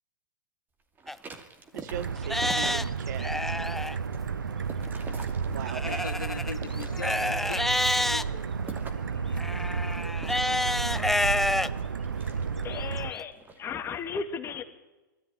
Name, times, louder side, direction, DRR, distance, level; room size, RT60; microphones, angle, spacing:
sound 1, 1.0-3.2 3.6-6.0 6.4-7.3 7.8-9.2 10.2-12.8 13.3-13.6, right 4 dB, 20° right, 2.5 m, -45 dB
Livestock farm animals working animals, 1.1-1.2 1.8-1.9 2.2-4.0 5.7-8.2 9.4-11.7 12.3-12.4 13.0-13.1, left 1 dB, ahead, 0.6 m, -28 dB
voice 1, 1.7-3.3 3.6-3.7 5.4-6.1, right 11 dB, 60° right, 14 dB, 1.3 m, -39 dB
sound 2, 1.9-13.1, right 5 dB, 90° right, 1.0 m, -32 dB
voice 2, 5.8-8.5 8.9-11.1, left 6 dB, 90° left, 9 dB, 2.0 m, -43 dB
voice 3, 12.6-14.6, left 6 dB, 25° left, 6 dB, 2.4 m, -35 dB
21.5 x 14.0 x 9.7 m, 1.1 s
hypercardioid pair, 120°, 10 cm